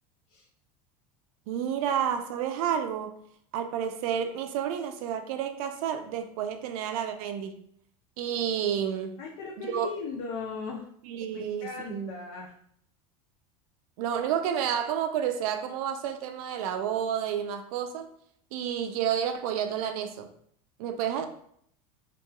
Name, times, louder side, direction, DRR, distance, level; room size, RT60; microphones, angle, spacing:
voice 1, 1.5-3.2 3.5-7.6 8.2-9.2 9.6-9.9 11.0-12.1 14.0-18.1 18.5-20.3 20.8-21.3, right 9 dB, 75° right, 7 dB, 0.4 m, -30 dB
voice 2, 9.2-10.9 11.3-12.5, left 4 dB, 70° left, -1 dB, 0.5 m, -37 dB
2.9 x 2.2 x 2.2 m, 0.65 s
supercardioid pair, 120°, 19 cm